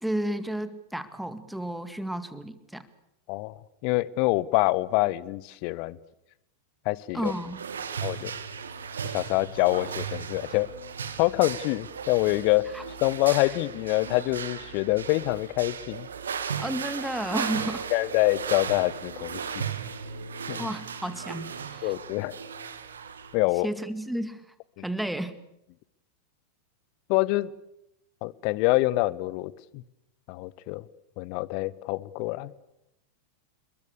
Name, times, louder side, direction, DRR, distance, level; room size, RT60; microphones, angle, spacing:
voice 1, 0.0-2.8 7.1-7.6 12.7-12.8 13.3-13.4 16.6-17.9 20.6-21.9 23.6-24.5 24.8-25.3, right 1 dB, ahead, 12 dB, 2.0 m, -32 dB
voice 2, 3.3-6.0 6.8-7.3 8.0-8.3 9.0-10.7 11.2-12.7 13.0-16.1 17.9-19.6 20.5-20.7 21.8-22.4 23.3-23.7 24.8-24.9 27.1-27.5 28.2-29.8 30.3-30.8 31.2-32.5, left 20 dB, 45° left, 21 dB, 1.0 m, -26 dB
sound 1, 7.2-23.4, right 7 dB, 70° right, 2.1 m, -36 dB
28.5 x 22.0 x 6.7 m, 0.84 s
figure-of-eight pair, 90°, 0 cm